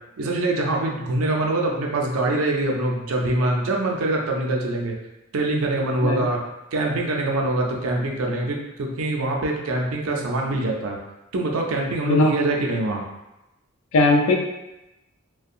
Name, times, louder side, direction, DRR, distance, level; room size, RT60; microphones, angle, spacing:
voice 1, 0.2-4.9 5.3-6.4 6.7-11.0 11.3-13.0, right 2 dB, 90° right, 0 dB, 0.5 m, -24 dB
voice 2, 13.9-14.4, left 2 dB, 80° left, 2 dB, 0.4 m, -18 dB
2.5 x 2.2 x 2.6 m, 0.95 s
head